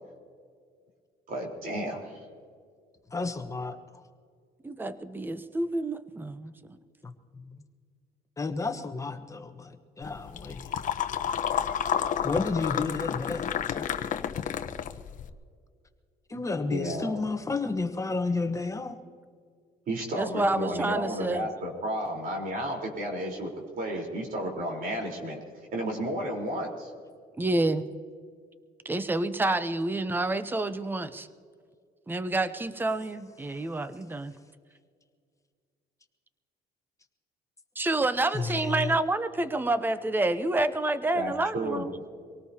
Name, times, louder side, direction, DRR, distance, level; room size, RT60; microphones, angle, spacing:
voice 1, 1.3-2.2 16.7-17.1 19.9-25.4 25.7-26.9 41.1-41.8, equal, 55° right, -1 dB, 4.2 m, -32 dB
voice 2, 3.1-3.8 7.0-7.1 7.5-7.6 8.4-10.6 12.2-13.9 16.3-19.0 38.3-39.0, left 3 dB, 20° left, 6 dB, 1.2 m, -31 dB
voice 3, 4.6-6.8 20.2-21.5 27.4-27.9 28.8-31.3 32.1-34.4 37.8-41.9, right 2 dB, 10° right, 12 dB, 0.8 m, -28 dB
sound 1, 10.0-15.3, left 8 dB, 50° left, 0.9 m, -30 dB
25.0 x 18.5 x 2.9 m, 2.1 s
cardioid pair, 110°, 17 cm